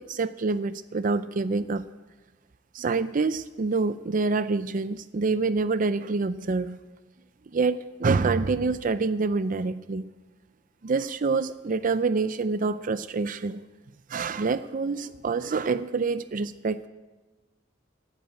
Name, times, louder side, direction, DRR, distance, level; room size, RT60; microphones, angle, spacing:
voice 1, 0.0-1.8 2.7-6.8 7.5-10.0 10.8-13.6 14.1-16.9, right 4 dB, 45° right, 13 dB, 0.5 m, -26 dB
16.5 x 8.1 x 8.9 m, 1.2 s
head